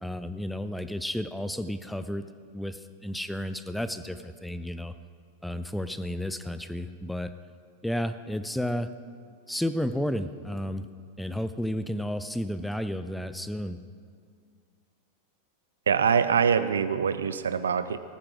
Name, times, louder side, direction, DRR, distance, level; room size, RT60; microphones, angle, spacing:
voice 1, 0.0-2.2 2.5-4.9 5.4-7.3 7.8-8.9 9.5-10.8 11.2-13.8, equal, ahead, 11 dB, 0.6 m, -32 dB
voice 2, 15.9-18.0, right 7 dB, 70° right, 13 dB, 0.6 m, -24 dB
18.5 x 14.5 x 3.9 m, 2.1 s
figure-of-eight pair, 90°, 0 cm